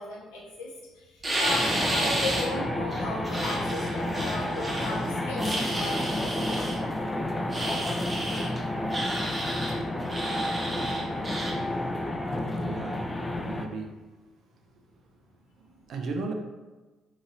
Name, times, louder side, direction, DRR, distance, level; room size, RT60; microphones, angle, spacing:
voice 1, 0.0-6.6, left 2 dB, 80° left, -5 dB, 0.7 m, -36 dB
sound 1, 1.2-2.5 2.9-5.0 5.4-6.8 7.5-8.5 8.9-9.7 10.1-11.5, right 1 dB, 25° right, 0.8 m, -31 dB
sound 2, 1.5-13.7, left 1 dB, 25° left, 0.4 m, -31 dB
voice 2, 12.6-13.1 13.5-14.0 15.9-16.3, right 3 dB, 60° right, 4 dB, 0.4 m, -35 dB
2.8 x 2.6 x 2.7 m, 1.2 s
hypercardioid pair, 50°, 0 cm